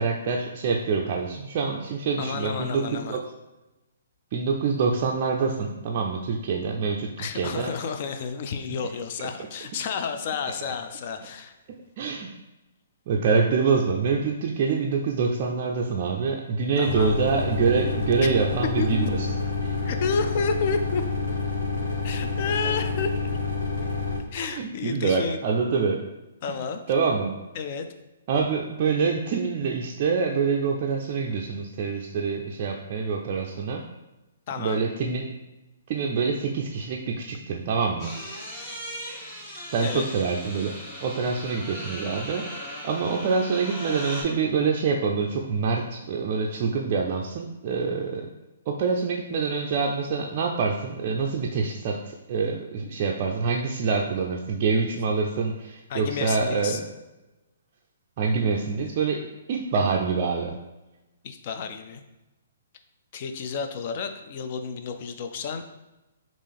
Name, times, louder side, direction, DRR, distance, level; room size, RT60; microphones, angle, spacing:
voice 1, 0.0-3.3 4.3-7.7 12.0-12.3 13.1-19.1 19.6-19.7 24.3-26.0 26.9-27.3 28.3-33.8 34.6-35.3 35.9-38.1 39.7-40.8 41.0-48.3 48.7-56.9 58.2-59.2 59.5-60.6, right 5 dB, 45° right, -1 dB, 0.3 m, -26 dB
voice 2, 2.2-3.2 7.2-11.5 16.8-17.2 18.2-18.3 18.8-19.1 19.8-21.0 22.0-23.2 24.3-25.4 26.4-26.8 27.5-27.9 34.5-34.8 39.8-40.1 55.9-56.8 61.2-62.0 63.1-65.6, left 5 dB, 45° left, 7 dB, 0.4 m, -31 dB
sound 1, 16.9-24.2, left 4 dB, 70° left, 0.8 m, -28 dB
sound 2, 38.0-44.2, left 1 dB, 20° left, 0.9 m, -38 dB
3.6 x 2.4 x 3.4 m, 1.0 s
hypercardioid pair, 140°, 0 cm